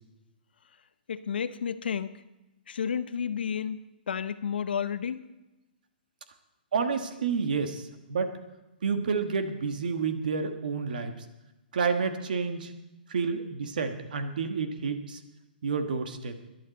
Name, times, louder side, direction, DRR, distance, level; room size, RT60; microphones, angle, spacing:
voice 1, 1.1-2.1 2.7-3.8 4.1-5.2, left 7 dB, 75° left, 12 dB, 0.7 m, -31 dB
voice 2, 6.7-8.3 8.8-11.1 11.7-12.7 13.1-15.2 15.6-16.4, right 5 dB, 60° right, 7 dB, 1.4 m, -29 dB
18.0 x 11.0 x 4.1 m, 1.0 s
hypercardioid pair, 175°, 5 cm